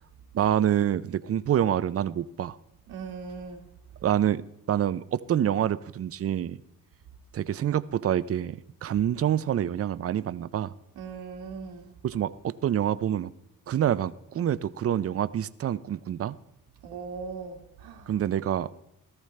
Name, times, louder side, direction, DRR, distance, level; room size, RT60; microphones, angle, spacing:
voice 1, 0.3-2.6 4.0-4.4 4.7-6.6 7.3-10.7 12.0-13.3 13.7-16.4 18.1-18.7, right 10 dB, 40° right, 16 dB, 0.5 m, -27 dB
voice 2, 2.9-3.6 11.0-11.9 16.8-18.1, right 5 dB, 85° right, 3 dB, 1.7 m, -39 dB
17.5 x 13.5 x 3.2 m, 0.82 s
cardioid pair, 115°, 38 cm